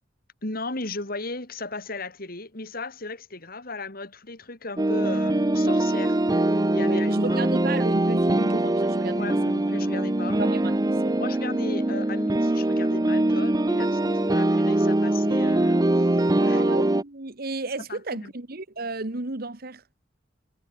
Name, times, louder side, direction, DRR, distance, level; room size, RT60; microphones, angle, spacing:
voice 1, 0.4-6.2 6.5-7.4 9.2-10.4 11.2-16.6 17.9-18.3, left 3 dB, 50° left, 3.7 m, -36 dB
sound 1, 4.8-17.0, right 1 dB, 20° right, 0.6 m, -23 dB
voice 2, 6.8-9.4 10.4-11.2 16.4-19.8, right 2 dB, 50° right, 1.6 m, -33 dB
head